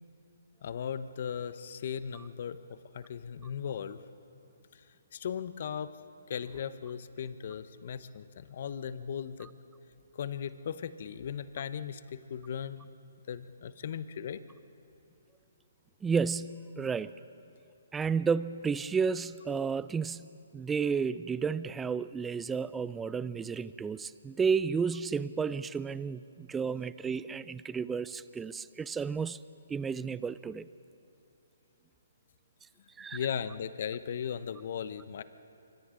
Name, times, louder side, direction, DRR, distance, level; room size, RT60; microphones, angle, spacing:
voice 1, 0.6-4.0 4.7-4.8 5.1-5.9 6.3-9.5 10.1-12.9 13.3-14.4 33.1-35.2, left 8 dB, 50° left, 13 dB, 0.9 m, -37 dB
voice 2, 16.0-17.1 17.9-29.4 29.7-30.7 33.0-33.2, right 5 dB, 10° right, 16 dB, 0.4 m, -32 dB
27.0 x 25.0 x 3.9 m, 2.7 s
hypercardioid pair, 145°, 0 cm